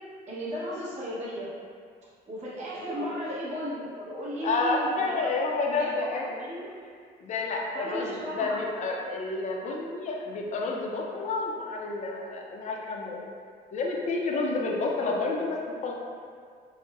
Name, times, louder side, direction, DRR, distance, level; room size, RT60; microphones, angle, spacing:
voice 1, 0.3-1.5 2.3-5.3 5.7-5.9 6.1-6.7 7.7-8.6, equal, 40° right, -9 dB, 1.0 m, -35 dB
voice 2, 2.8-3.1 4.4-6.4 7.2-13.3 13.7-15.9, left 3 dB, 45° left, -1 dB, 0.5 m, -30 dB
5.2 x 2.1 x 2.4 m, 2.1 s
cardioid pair, 110°, 17 cm